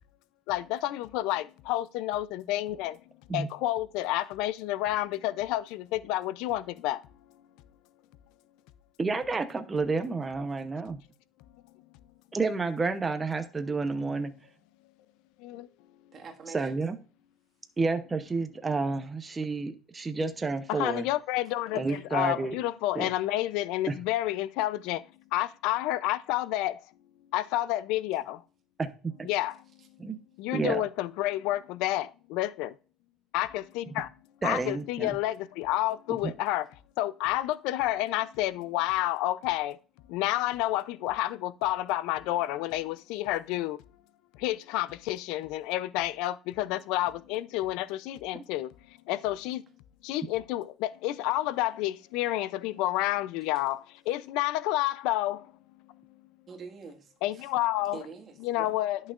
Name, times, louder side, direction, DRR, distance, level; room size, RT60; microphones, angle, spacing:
voice 1, 0.5-3.0 3.3-7.0 15.4-15.7 20.7-25.0 25.3-26.8 27.3-28.4 29.3-29.6 30.4-32.7 33.3-34.1 34.4-36.7 37.0-39.8 40.1-43.8 44.4-48.7 49.1-49.6 50.0-55.4 57.2-58.0 58.4-59.0, left 15 dB, 80° left, 0.5 m, -30 dB
voice 2, 9.0-11.0 12.3-14.3 16.5-16.9 17.8-21.0 21.7-22.6 22.9-23.1 23.9-24.0 28.8-28.9 29.2-29.3 30.0-30.2 30.5-30.8 34.4-35.2 36.1-36.3 48.3-48.4, right 3 dB, 15° right, 0.8 m, -30 dB
voice 3, 16.1-16.8 29.8-29.9 56.5-57.5 57.9-58.8, right 5 dB, 35° right, 1.8 m, -45 dB
11.0 x 6.3 x 2.5 m
cardioid pair, 140°, 0 cm